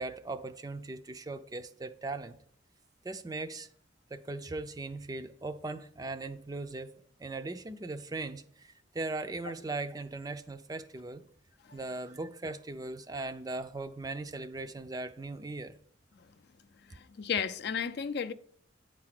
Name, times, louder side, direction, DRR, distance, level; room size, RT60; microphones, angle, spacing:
voice 1, 0.0-2.4 3.0-3.7 4.1-6.9 7.2-11.2 11.7-15.8, right 2 dB, 20° right, 0.4 m, -39 dB
voice 2, 16.9-18.3, left 7 dB, 55° left, 0.4 m, -34 dB
9.5 x 4.8 x 5.9 m
head